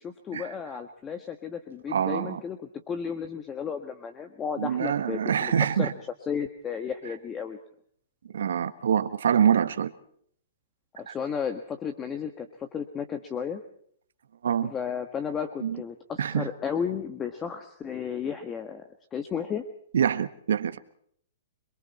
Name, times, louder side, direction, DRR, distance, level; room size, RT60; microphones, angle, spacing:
voice 1, 0.0-2.6 2.9-5.5 5.8-5.9 6.3-7.6 11.0-13.6 14.6-19.6, left 7 dB, 20° left, 8 dB, 1.5 m, -33 dB
voice 2, 1.9-2.4 4.6-5.9 8.3-9.9 11.1-11.2 14.4-14.7 15.6-15.8 16.2-16.5 19.9-20.8, right 8 dB, 75° right, 11 dB, 1.4 m, -25 dB
26.5 x 23.0 x 4.3 m, 0.63 s
hypercardioid pair, 140°, 0 cm